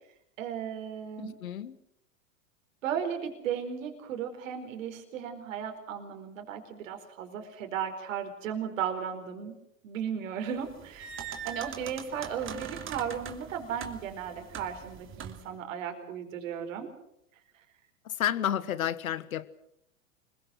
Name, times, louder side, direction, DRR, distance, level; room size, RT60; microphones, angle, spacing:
voice 1, 0.4-1.4 2.8-9.6 9.8-16.9, right 8 dB, 65° right, 5 dB, 4.5 m, -35 dB
voice 2, 1.2-1.8 18.0-19.5, left 10 dB, 80° left, 16 dB, 1.6 m, -31 dB
sound 1, 10.6-15.5, right 8 dB, 30° right, 2.7 m, -42 dB
26.0 x 22.0 x 6.3 m, 0.77 s
hypercardioid pair, 100°, 41 cm